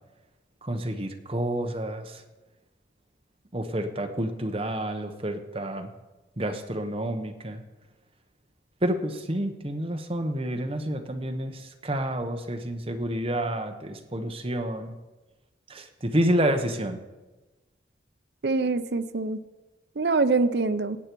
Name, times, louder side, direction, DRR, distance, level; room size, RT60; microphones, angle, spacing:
voice 1, 0.6-2.2 3.5-5.9 6.4-7.6 8.8-14.9 15.7-17.0, right 1 dB, 30° right, 5 dB, 0.9 m, -29 dB
voice 2, 18.4-19.4 20.0-21.0, right 3 dB, 60° right, 12 dB, 0.6 m, -24 dB
17.0 x 8.1 x 4.6 m, 1.1 s
head